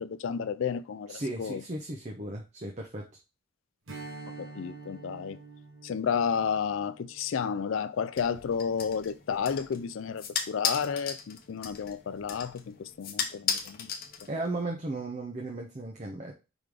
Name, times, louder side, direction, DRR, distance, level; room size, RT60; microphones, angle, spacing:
voice 1, 0.0-1.6 4.4-5.4 5.8-13.9, left 6 dB, 70° left, 0.4 m, -32 dB
voice 2, 1.1-3.1 14.3-16.3, right 2 dB, 35° right, 0.8 m, -35 dB
Strum, 3.9-8.7, right 3 dB, 75° right, 1.4 m, -47 dB
sound 1, 8.2-14.6, left 7 dB, 45° left, 0.8 m, -36 dB
5.1 x 3.9 x 4.8 m
head